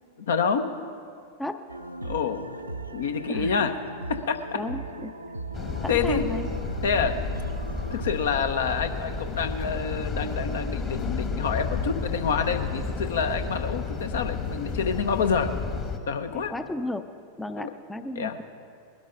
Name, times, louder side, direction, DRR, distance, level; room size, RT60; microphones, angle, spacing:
voice 1, 0.2-0.7 2.0-2.6 2.9-3.8 4.1-4.6 5.9-6.3 6.8-7.2 7.9-15.5 16.1-16.5 17.6-17.7 18.1-18.4, left 6 dB, 60° left, 8 dB, 0.9 m, -27 dB
sound 1, 1.7-8.3, right 2 dB, 80° right, 0.6 m, -37 dB
voice 2, 3.3-3.7 4.5-5.1 5.8-6.5 16.3-17.1 17.4-18.4, left 1 dB, 5° left, 10 dB, 0.5 m, -34 dB
sound 2, 5.5-16.0, left 4 dB, 25° left, 1.3 m, -32 dB
sound 3, 9.2-15.6, left 3 dB, 90° left, 3.9 m, -42 dB
20.5 x 12.5 x 3.8 m, 2.4 s
figure-of-eight pair, 90°, 0 cm